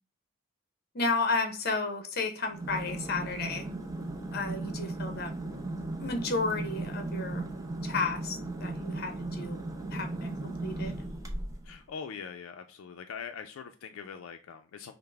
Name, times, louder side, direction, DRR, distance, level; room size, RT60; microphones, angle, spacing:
voice 1, 0.9-3.7 4.3-5.3 6.0-7.4 7.8-9.6 9.9-10.9, left 3 dB, 45° left, 6 dB, 0.7 m, -32 dB
sound 1, 2.5-11.7, right 2 dB, 15° right, 0.5 m, -36 dB
voice 2, 11.6-14.9, left 6 dB, 80° left, 7 dB, 0.4 m, -42 dB
5.6 x 2.0 x 3.3 m, 0.35 s
head